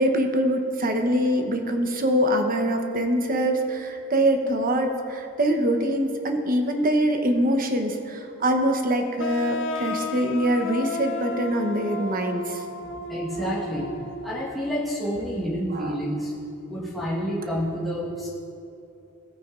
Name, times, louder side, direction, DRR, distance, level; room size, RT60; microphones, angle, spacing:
voice 1, 0.0-12.6 15.7-15.9, right 1 dB, 40° right, 5 dB, 0.9 m, -24 dB
sound 1, 9.2-14.7, left 3 dB, 60° left, 0.5 m, -33 dB
voice 2, 13.1-13.9 14.2-16.3 16.7-18.3, equal, ahead, -8 dB, 1.3 m, -29 dB
16.5 x 9.1 x 2.5 m, 2.7 s
head